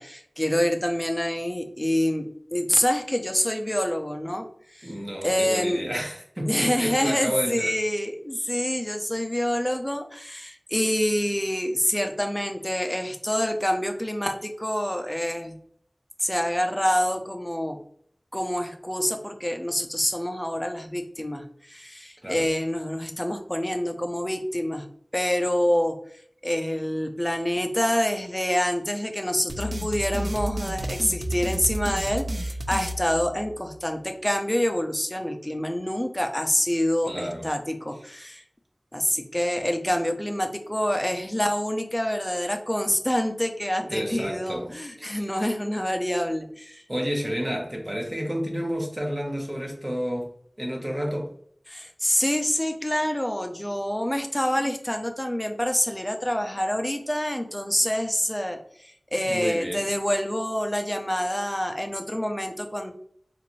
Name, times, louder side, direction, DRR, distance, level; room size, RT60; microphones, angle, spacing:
voice 1, 0.0-4.5 4.7-4.9 5.2-5.8 6.5-15.6 16.2-17.8 18.3-24.9 25.1-26.0 26.4-38.4 38.9-46.8 51.7-62.9, equal, 15° left, 0.5 m, -26 dB
voice 2, 4.8-7.7 22.2-22.5 37.1-37.5 38.0-38.2 43.9-44.7 45.0-45.3 46.9-50.3 50.6-51.3 56.4-56.5 59.2-59.8, equal, 30° right, 0.9 m, -30 dB
sound 1, 29.5-33.8, right 1 dB, 80° right, 0.3 m, -31 dB
3.8 x 2.5 x 3.0 m
wide cardioid pair, 50°, 0 cm